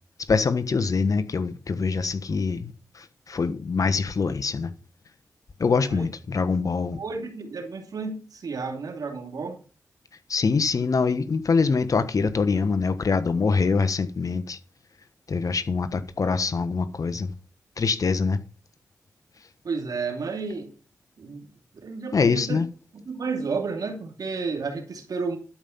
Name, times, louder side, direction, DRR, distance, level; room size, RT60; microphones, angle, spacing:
voice 1, 0.3-4.7 5.6-7.0 10.3-14.6 15.3-17.3 17.8-18.4 22.1-22.7, left 4 dB, 60° left, 1.3 m, -24 dB
voice 2, 5.7-6.1 6.9-9.6 19.6-20.7 21.2-21.5 21.8-22.6 22.9-25.4, right 4 dB, 70° right, 2.6 m, -32 dB
12.0 x 5.4 x 7.3 m
cardioid pair, 40°, 7 cm